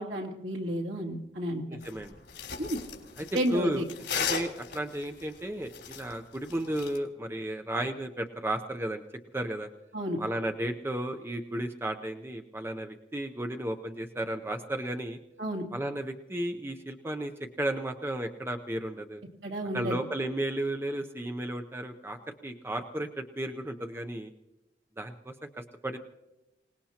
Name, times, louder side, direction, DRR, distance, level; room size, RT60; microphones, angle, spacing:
voice 1, 0.0-1.8 2.6-2.8 3.3-3.8 9.9-10.2 15.4-15.7 19.4-20.0, equal, 75° right, -1 dB, 2.7 m, -31 dB
voice 2, 1.7-2.1 3.2-3.8 4.1-9.0 9.3-9.7 10.2-15.2 15.7-19.2 19.7-24.3 25.0-26.0, right 1 dB, 15° right, 5 dB, 0.6 m, -34 dB
sound 1, 1.8-7.0, left 7 dB, 80° left, 3.3 m, -37 dB
26.0 x 19.0 x 2.9 m, 0.97 s
head